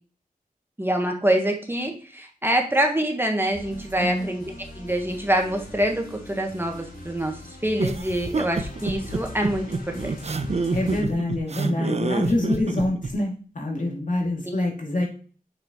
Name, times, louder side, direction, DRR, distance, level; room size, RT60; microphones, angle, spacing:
voice 1, 0.8-4.4 4.8-9.7 10.0-10.4 14.5-14.6, right 1 dB, 15° right, 3 dB, 1.3 m, -25 dB
sound 1, 3.5-11.0, left 1 dB, 90° left, 2.9 m, -41 dB
voice 2, 4.0-4.3 10.7-15.1, left 1 dB, 60° left, -1 dB, 2.3 m, -26 dB
sound 2, 7.8-13.1, right 4 dB, 45° right, 0.6 m, -27 dB
6.8 x 6.3 x 3.0 m, 0.40 s
wide cardioid pair, 85°, 15 cm